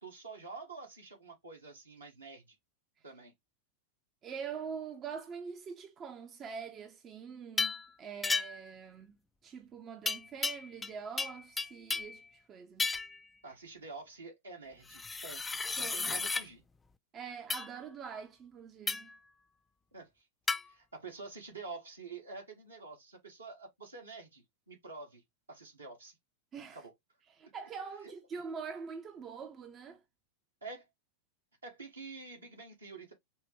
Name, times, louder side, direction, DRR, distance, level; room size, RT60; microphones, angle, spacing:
voice 1, 0.0-2.6 3.0-3.3 13.4-15.4 15.8-16.6 19.9-20.3 20.6-25.2 25.5-26.2 26.7-26.9 30.6-30.9 31.6-33.1, right 3 dB, 75° right, 1.6 m, -48 dB
voice 2, 4.2-9.2 9.4-12.9 15.8-16.1 17.1-19.1 26.5-26.8 27.4-30.0, right 6 dB, 30° right, 0.6 m, -44 dB
sound 1, 7.6-7.9 8.2-8.7 10.1-10.9 11.2-12.2 12.8-13.2 14.9-16.5 17.5-17.7 18.9-19.2 20.5-20.6, left 4 dB, 10° left, 0.3 m, -34 dB
5.4 x 2.2 x 3.1 m
figure-of-eight pair, 90°, 0 cm